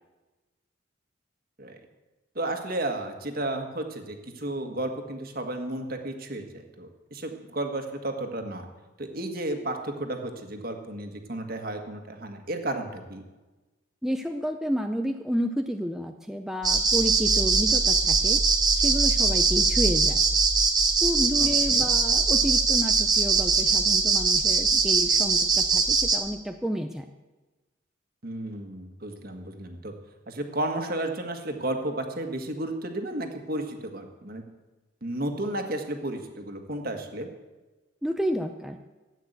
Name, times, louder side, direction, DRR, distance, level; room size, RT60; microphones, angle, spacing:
voice 1, 2.4-8.7 9.0-13.2 21.4-21.9 28.2-29.9 30.3-34.4 35.0-37.3, right 1 dB, 45° right, 5 dB, 1.7 m, -33 dB
voice 2, 14.0-18.4 18.8-20.2 21.0-27.1 38.0-38.8, equal, ahead, 4 dB, 0.5 m, -30 dB
sound 1, 16.6-26.2, right 4 dB, 20° right, 1.3 m, -22 dB
14.0 x 9.2 x 8.1 m, 1.2 s
head